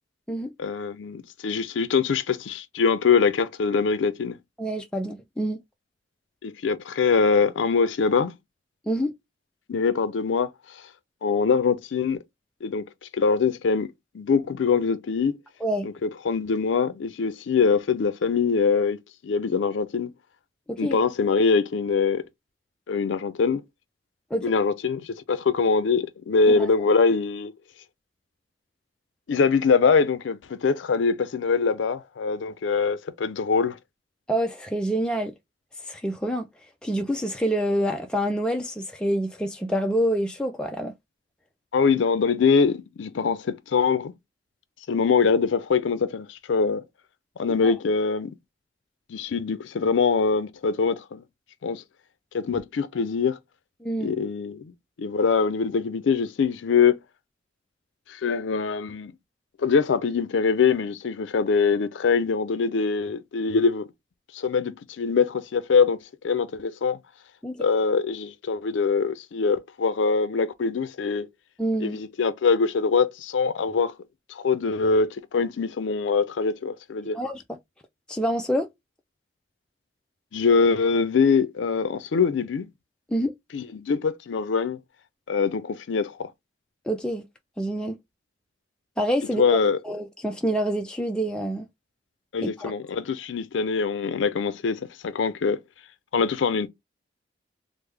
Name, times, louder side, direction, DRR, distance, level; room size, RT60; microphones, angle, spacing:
voice 1, 0.6-4.4 6.4-8.3 9.7-10.8 11.2-12.2 12.6-12.9 13.1-15.4 15.8-19.0 19.2-20.1 20.8-22.2 22.9-23.6 24.4-27.5 29.3-33.8 41.7-44.1 44.9-46.8 47.4-48.3 49.1-51.2 51.6-51.8 52.3-53.4 54.0-54.7 55.0-57.0 58.1-59.1 59.6-63.8 64.3-67.0 67.6-71.3 71.8-73.9 74.3-77.2 80.3-82.7 83.5-84.8 85.3-86.3 89.4-89.8 92.3-95.6 96.1-96.7, left 5 dB, 90° left, 0.4 m, -23 dB
voice 2, 4.6-5.6 8.9-9.1 15.6-15.9 20.7-21.0 24.3-24.5 26.5-26.7 34.3-35.3 35.9-36.5 36.8-40.9 47.6-47.7 53.8-54.1 67.4-67.6 71.6-72.0 77.1-77.6 78.1-78.7 83.1-83.3 86.9-87.2 87.6-88.0 89.0-89.4 89.8-91.7 92.4-92.7, right 1 dB, 5° left, 0.3 m, -27 dB
3.4 x 2.0 x 3.2 m
head